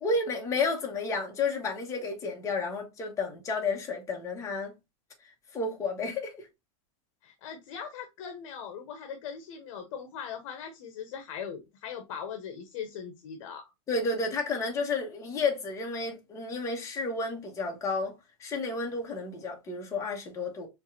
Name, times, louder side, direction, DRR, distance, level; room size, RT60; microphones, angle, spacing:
voice 1, 0.0-4.7 5.5-6.3 13.9-18.1 18.4-20.7, left 3 dB, 20° left, 1.4 m, -31 dB
voice 2, 7.2-13.7, left 7 dB, 60° left, 1.0 m, -40 dB
4.7 x 3.3 x 2.8 m
supercardioid pair, 160°, 17 cm